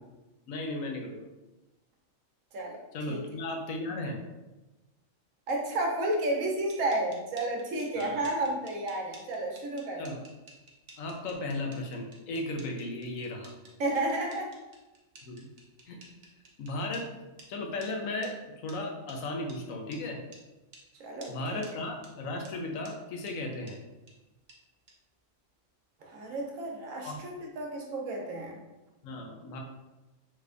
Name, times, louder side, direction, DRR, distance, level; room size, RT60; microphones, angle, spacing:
voice 1, 0.5-1.3 2.9-4.2 8.0-8.2 10.0-10.2 11.0-13.5 15.2-15.5 15.9-16.0 16.6-17.1 17.5-20.2 21.3-23.8 27.0-27.2 29.0-29.6, left 2 dB, 85° left, 2 dB, 1.0 m, -35 dB
voice 2, 5.5-10.1 13.8-14.5 21.0-21.6 26.0-28.6, right 1 dB, 80° right, 0 dB, 1.1 m, -32 dB
sound 1, 6.5-17.0 17.4-17.5 17.8-17.9 18.2-18.3 18.7-18.8 19.1-19.2 19.5-19.6 19.9-20.0 20.3-20.4 20.7-20.8 21.2-21.3 21.6-21.7 22.0-22.1 22.4-22.5 22.8-22.9 23.3-23.4 23.7-23.8 24.1-24.2 24.5-24.6 24.9-25.0, right 2 dB, 50° right, 0.6 m, -52 dB
3.4 x 3.2 x 2.4 m, 1.1 s
omnidirectional pair, 1.4 m